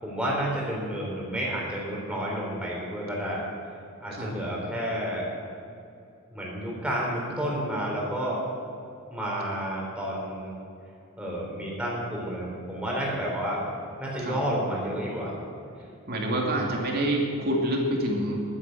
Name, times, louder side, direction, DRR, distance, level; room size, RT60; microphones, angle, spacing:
voice 1, 0.0-3.4 4.0-5.3 6.3-8.4 9.1-10.5 11.2-13.6 14.0-15.3 16.1-16.6, equal, 5° right, -4 dB, 4.0 m, -30 dB
voice 2, 16.1-18.4, right 1 dB, 45° right, 0 dB, 2.6 m, -27 dB
12.0 x 10.0 x 7.8 m, 2.6 s
head